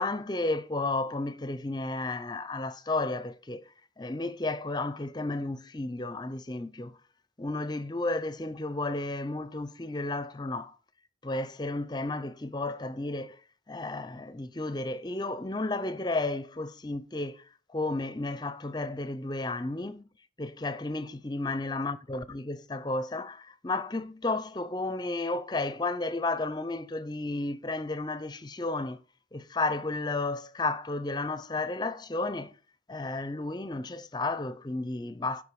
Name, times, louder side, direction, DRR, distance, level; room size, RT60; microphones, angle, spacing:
voice 1, 0.0-3.6 4.0-7.0 7.4-10.7 11.2-13.4 13.7-17.4 17.7-20.1 20.4-22.2 22.7-29.0 29.3-32.5 32.9-35.4, left 2 dB, 20° left, 0.5 m, -32 dB
8.0 x 5.2 x 6.9 m
head